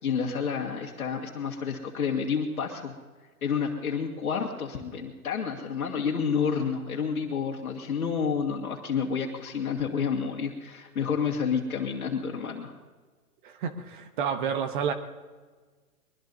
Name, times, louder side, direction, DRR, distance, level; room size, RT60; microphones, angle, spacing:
voice 1, 0.0-2.9 3.4-12.7, left 6 dB, 65° left, -1 dB, 2.0 m, -29 dB
voice 2, 13.4-14.9, right 7 dB, 35° right, 8 dB, 1.1 m, -30 dB
22.5 x 21.5 x 2.8 m, 1.4 s
hypercardioid pair, 135°, 45 cm